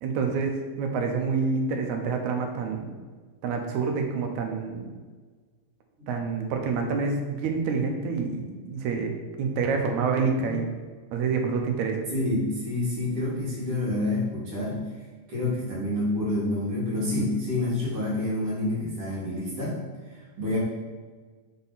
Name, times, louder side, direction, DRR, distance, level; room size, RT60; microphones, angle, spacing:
voice 1, 0.0-2.9 3.4-4.9 6.1-9.1 9.4-10.7 11.1-12.1, right 5 dB, 80° right, 3 dB, 2.2 m, -27 dB
voice 2, 12.1-14.8 15.3-19.8 20.4-20.6, left 2 dB, 50° right, -7 dB, 3.1 m, -28 dB
7.5 x 4.0 x 4.1 m, 1.4 s
omnidirectional pair, 3.3 m